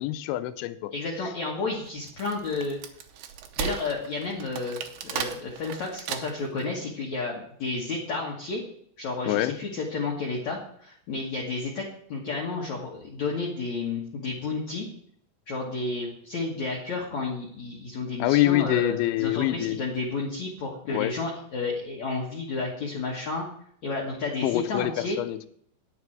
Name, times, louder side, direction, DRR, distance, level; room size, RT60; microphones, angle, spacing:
voice 1, 0.0-0.9 9.3-9.6 18.2-19.8 20.9-21.1 24.4-25.5, left 15 dB, 85° left, 12 dB, 3.0 m, -25 dB
voice 2, 0.9-2.8 3.6-8.6 9.0-11.8 12.1-14.9 15.5-18.9 19.2-23.5 23.8-25.2, left 3 dB, 60° left, -3 dB, 1.9 m, -31 dB
Wood, 1.9-6.6, right 8 dB, 75° right, 2.4 m, -36 dB
9.7 x 9.5 x 4.6 m, 0.65 s
omnidirectional pair, 5.4 m